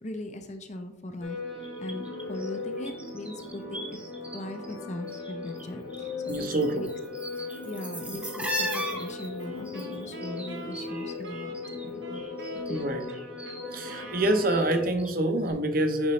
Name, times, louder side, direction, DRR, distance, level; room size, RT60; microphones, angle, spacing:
voice 1, 0.0-1.4 1.8-4.0 4.3-6.9 7.6-12.0 12.5-13.1, left 1 dB, 40° left, 7 dB, 0.6 m, -39 dB
sound 1, 1.2-14.8, left 3 dB, 75° left, 1.4 m, -38 dB
sound 2, 1.6-4.4 4.6-5.7 5.9-11.9 12.1-15.2 15.5-15.6, right 1 dB, 5° right, 0.9 m, -39 dB
voice 2, 6.3-6.8 12.1-12.2 12.7-13.0 13.7-16.1, right 1 dB, 50° right, 6 dB, 0.8 m, -26 dB
Wind instrument woodwind instrument, 8.6-15.2, right 1 dB, 75° right, 1.3 m, -46 dB
9.6 x 4.0 x 3.2 m, 0.97 s
head